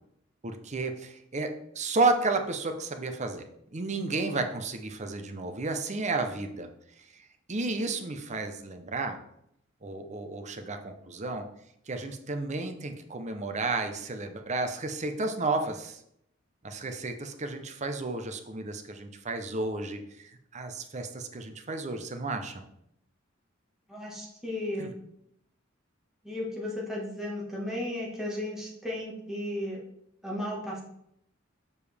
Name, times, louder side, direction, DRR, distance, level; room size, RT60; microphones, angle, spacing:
voice 1, 0.4-3.4 3.7-6.7 7.5-9.2 9.8-11.4 11.9-16.0 16.6-22.6 24.8-24.9, right 3 dB, 35° right, 6 dB, 0.8 m, -32 dB
voice 2, 23.9-25.0 26.2-29.8 30.2-30.8, left 1 dB, ahead, -5 dB, 1.6 m, -34 dB
6.9 x 6.7 x 3.5 m, 0.75 s
head